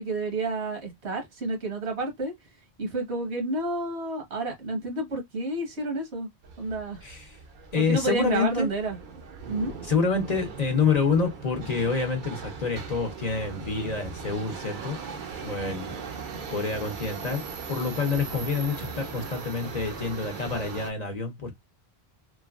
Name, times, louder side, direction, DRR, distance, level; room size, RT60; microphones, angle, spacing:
voice 1, 0.0-2.3 2.8-6.3 6.6-7.0 7.8-9.0 9.5-9.7, right 2 dB, 80° right, 1.4 m, -30 dB
Subway metro underground, 6.4-20.9, right 5 dB, 55° right, 0.6 m, -39 dB
voice 2, 7.0-7.4 7.7-8.7 9.8-15.0 15.4-15.9 16.5-21.5, left 5 dB, 45° left, 0.7 m, -27 dB
3.1 x 2.2 x 2.3 m
omnidirectional pair, 1.1 m